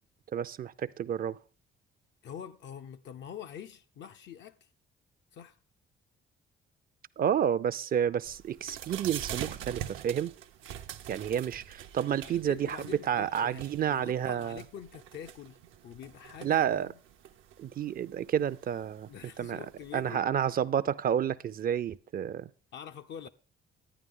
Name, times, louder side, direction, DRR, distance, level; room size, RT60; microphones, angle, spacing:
voice 1, 0.3-1.4 7.2-10.3 11.1-14.6 16.4-16.9 17.6-19.1 19.4-19.6 19.9-22.5, right 9 dB, 45° right, 0.4 m, -30 dB
voice 2, 2.2-4.7 5.3-5.6 12.2-17.0 19.1-20.2 22.7-23.3, left 9 dB, 65° left, 0.5 m, -45 dB
sound 1, 8.2-20.1, right 10 dB, 85° right, 0.7 m, -45 dB
11.0 x 9.0 x 3.7 m
cardioid pair, 90°, 20 cm